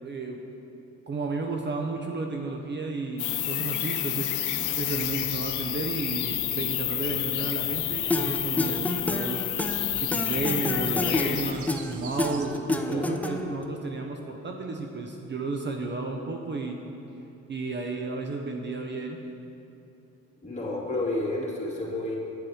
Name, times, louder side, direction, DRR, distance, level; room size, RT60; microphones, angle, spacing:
voice 1, 0.0-0.4 1.1-9.4 10.0-16.8 17.5-19.2, right 3 dB, 35° right, 3 dB, 0.7 m, -33 dB
sound 1, 3.2-11.5, left 14 dB, 85° left, 0.6 m, -29 dB
sound 2, 4.5-12.5, right 5 dB, 80° right, 0.8 m, -46 dB
sound 3, 8.1-13.6, left 2 dB, 5° left, 0.5 m, -29 dB
voice 2, 20.4-22.2, left 2 dB, 25° left, -6 dB, 2.4 m, -30 dB
8.9 x 7.6 x 4.8 m, 2.9 s
cardioid pair, 90°, 30 cm